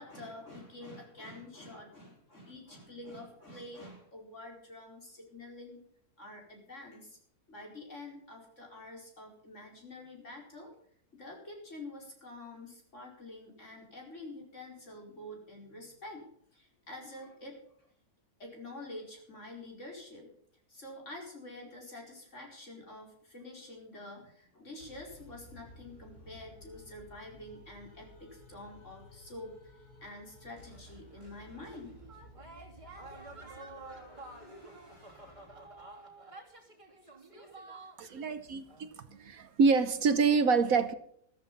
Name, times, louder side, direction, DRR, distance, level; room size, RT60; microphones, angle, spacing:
voice 1, 0.0-5.8 6.2-7.2 7.5-10.7 11.1-16.2 16.5-17.6 18.4-20.3 20.7-32.0 32.8-33.0, left 2 dB, 50° left, 0 dB, 5.1 m, -47 dB
sound 1, 24.8-36.2, left 1 dB, 80° left, 4.6 m, -55 dB
sound 2, 30.7-38.3 38.7-39.3, right 2 dB, 20° right, 3.0 m, -51 dB
voice 2, 38.0-38.9 39.2-40.9, right 5 dB, 65° right, 12 dB, 1.4 m, -26 dB
14.0 x 13.5 x 5.5 m, 0.65 s
omnidirectional pair, 1.6 m